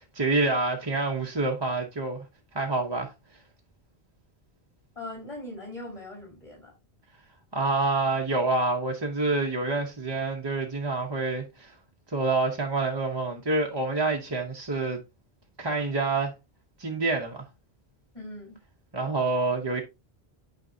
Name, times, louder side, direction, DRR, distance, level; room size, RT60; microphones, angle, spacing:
voice 1, 0.1-2.2 2.5-3.1 7.5-11.7 12.1-15.0 15.6-16.3 16.8-17.5 18.9-19.8, right 3 dB, 25° right, 0.8 m, -27 dB
voice 2, 5.0-6.7 18.1-18.6, left 2 dB, 30° left, 4.0 m, -40 dB
9.1 x 5.1 x 2.7 m
omnidirectional pair, 1.1 m